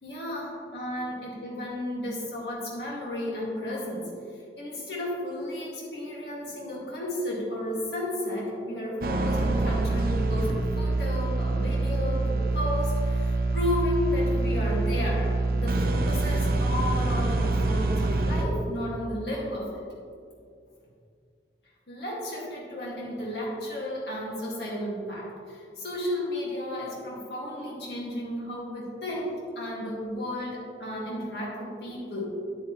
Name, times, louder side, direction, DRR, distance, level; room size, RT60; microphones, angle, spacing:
voice 1, 0.0-4.1 4.6-19.8 21.9-32.3, left 1 dB, 70° left, -5 dB, 2.2 m, -33 dB
sound 1, 9.0-18.4, right 3 dB, 55° right, 0.6 m, -26 dB
8.7 x 8.4 x 3.2 m, 2.3 s
head